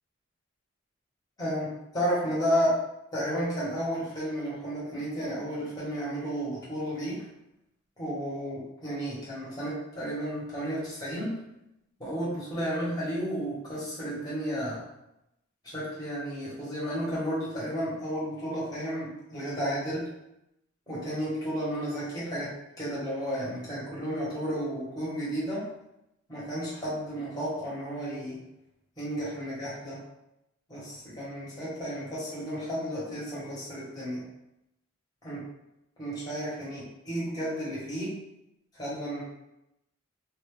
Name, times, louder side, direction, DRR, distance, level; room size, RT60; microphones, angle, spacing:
voice 1, 1.4-2.8 3.1-7.2 8.0-11.4 12.0-14.8 15.6-20.1 20.9-25.7 26.3-28.4 29.0-30.0 30.7-34.2 35.2-35.4 36.0-38.1 38.7-39.2, equal, 20° left, -9 dB, 1.1 m, -32 dB
2.6 x 2.3 x 3.2 m, 0.88 s
head